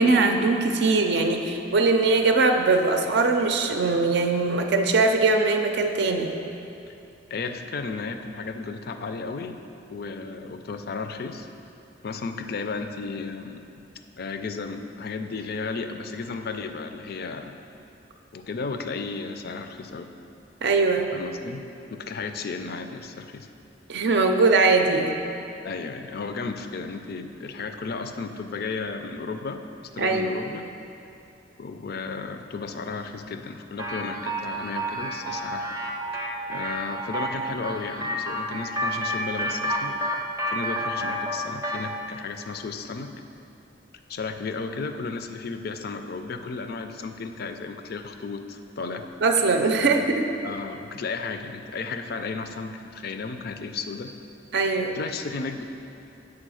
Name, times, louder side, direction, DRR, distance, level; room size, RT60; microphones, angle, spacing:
voice 1, 0.0-6.3 20.6-21.1 23.9-25.1 30.0-30.3 49.2-50.3 54.5-55.0, right 3 dB, 60° right, 4 dB, 0.5 m, -21 dB
voice 2, 7.3-9.6 9.9-11.5 12.0-13.8 14.2-17.5 18.3-20.1 21.1-21.6 21.9-23.5 25.6-29.6 29.9-30.7 31.6-35.8 36.1-36.2 36.5-40.0 40.5-43.1 44.1-49.1 49.8-50.1 50.4-54.1 54.9-55.7, left 4 dB, 55° left, 7 dB, 0.4 m, -34 dB
sound 1, 33.8-41.9, equal, 20° right, 0.6 m, -30 dB
7.4 x 4.8 x 6.2 m, 2.8 s
head